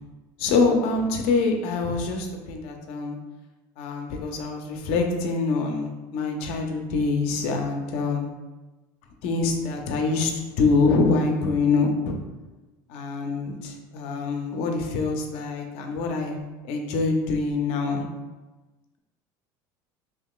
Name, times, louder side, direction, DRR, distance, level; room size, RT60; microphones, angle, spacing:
voice 1, 0.4-3.1 3.8-8.3 9.2-12.2 12.9-16.4 16.6-18.0, left 4 dB, 70° left, 3 dB, 0.6 m, -25 dB
2.8 x 2.3 x 3.6 m, 1.2 s
supercardioid pair, 100°, 11 cm